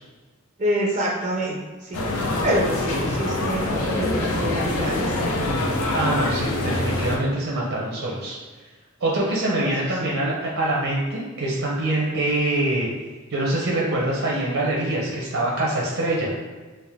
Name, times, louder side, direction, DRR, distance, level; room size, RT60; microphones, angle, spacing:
voice 1, 0.6-2.0 2.4-5.5 9.4-9.7 10.0-10.2, equal, 40° right, -2 dB, 0.4 m, -27 dB
sound 1, 1.9-7.2, left 2 dB, 90° left, 0.6 m, -25 dB
voice 2, 5.9-8.4 9.0-12.9 13.3-16.3, right 1 dB, 75° right, -3 dB, 0.7 m, -24 dB
3.6 x 2.6 x 3.5 m, 1.3 s
head